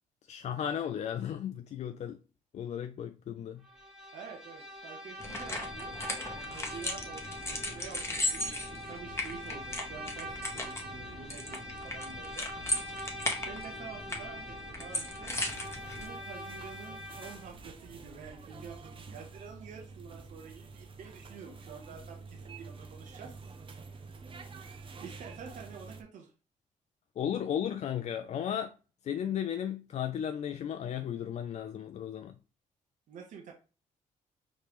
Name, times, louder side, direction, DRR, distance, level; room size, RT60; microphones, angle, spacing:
voice 1, 0.3-2.2 2.5-3.6 27.2-28.7 29.0-32.4, left 9 dB, 55° left, 0.4 m, -35 dB
Bowed string instrument, 3.6-17.5, equal, 5° right, 1.5 m, -44 dB
voice 2, 4.1-12.8 13.4-15.4 15.9-23.4 24.6-26.3 33.1-33.5, right 6 dB, 65° right, 0.9 m, -48 dB
sound 1, 5.2-16.1, left 1 dB, 20° left, 1.2 m, -37 dB
sound 2, 15.3-26.0, right 4 dB, 40° right, 0.7 m, -48 dB
5.0 x 3.2 x 3.0 m
cardioid pair, 100°, 14 cm